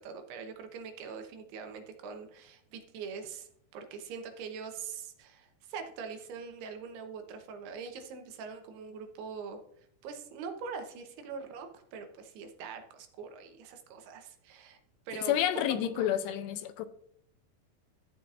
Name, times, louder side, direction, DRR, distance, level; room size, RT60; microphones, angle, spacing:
voice 1, 0.0-9.6 10.0-14.8 15.1-15.4 16.0-16.1, right 5 dB, 75° right, 2.9 m, -43 dB
voice 2, 15.3-16.9, left 11 dB, 85° left, 2.8 m, -29 dB
13.0 x 8.2 x 2.5 m
omnidirectional pair, 4.9 m